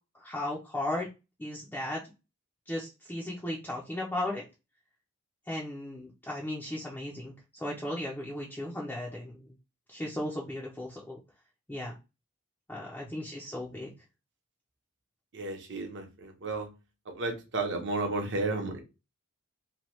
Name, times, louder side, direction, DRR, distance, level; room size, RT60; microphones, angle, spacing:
voice 1, 0.1-1.1 1.4-2.0 2.7-4.4 5.5-9.4 9.9-11.2 11.7-12.0 12.7-13.9, left 1 dB, 10° left, -4 dB, 0.4 m, -36 dB
voice 2, 15.3-16.7 17.1-18.8, right 3 dB, 55° right, 3 dB, 0.8 m, -32 dB
2.9 x 2.2 x 3.0 m, 0.27 s
head